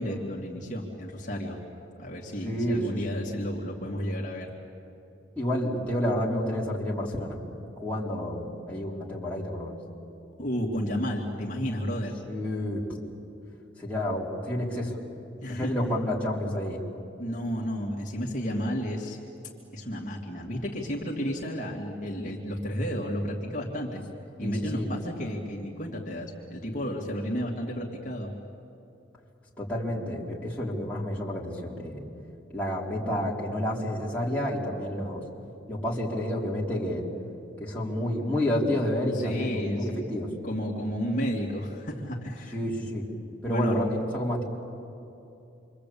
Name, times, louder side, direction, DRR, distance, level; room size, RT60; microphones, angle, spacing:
voice 1, 0.0-1.6 2.0-4.5 10.4-12.2 15.4-15.7 17.2-19.2 19.7-24.0 24.4-28.3 39.1-40.0 40.4-42.6 43.5-43.8, equal, 40° left, -3 dB, 2.5 m, -32 dB
voice 2, 2.4-3.2 5.4-7.4 7.8-9.8 12.3-13.0 13.8-14.9 15.5-16.8 24.4-24.9 29.6-32.0 32.5-35.2 35.7-37.1 37.6-40.3 42.5-43.0 43.4-44.4, left 1 dB, 5° left, -6 dB, 3.8 m, -29 dB
28.0 x 24.5 x 8.6 m, 2.8 s
head